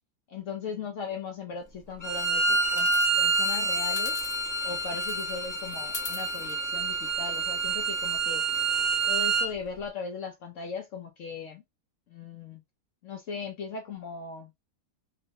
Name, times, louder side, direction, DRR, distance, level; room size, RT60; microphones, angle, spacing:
voice 1, 0.3-2.9 3.2-4.2 4.6-8.4 9.1-11.6 12.1-12.6 13.0-14.5, left 5 dB, 65° left, 0.8 m, -38 dB
Bowed string instrument, 2.0-9.5, right 3 dB, 20° left, 0.6 m, -27 dB
sound 1, 2.8-4.7 5.0-7.8, left 3 dB, 40° left, 1.3 m, -43 dB
3.8 x 2.2 x 2.7 m
omnidirectional pair, 1.7 m